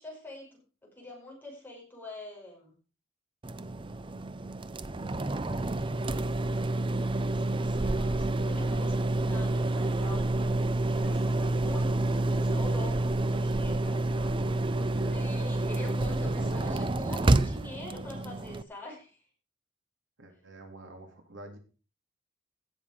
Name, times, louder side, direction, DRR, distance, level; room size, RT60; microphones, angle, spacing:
voice 1, 0.0-2.8 5.1-5.6 7.3-14.1 15.1-19.3, left 1 dB, 10° left, -2 dB, 5.2 m, -44 dB
sound 1, 3.4-18.6, right 2 dB, 25° right, 0.6 m, -29 dB
voice 2, 11.0-11.4 14.1-15.2 16.4-17.4 20.2-21.6, right 1 dB, 75° right, 3 dB, 3.0 m, -46 dB
16.5 x 7.3 x 5.1 m, 0.36 s
head